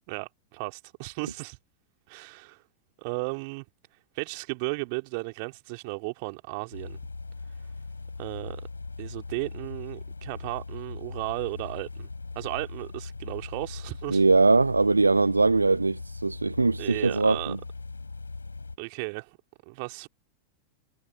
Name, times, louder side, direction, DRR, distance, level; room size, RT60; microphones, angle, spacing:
voice 1, 0.1-1.6 2.1-2.6 3.0-3.6 4.1-7.0 8.2-8.6 9.0-12.1 12.3-14.3 16.8-17.6 18.8-19.4 19.7-20.1, right 31 dB, 45° right, 2.7 m, -35 dB
sound 1, 6.7-18.8, left 3 dB, 80° left, 4.7 m, -40 dB
voice 2, 14.1-17.6, right 3 dB, 80° right, 0.4 m, -21 dB
figure-of-eight pair, 90°, 0 cm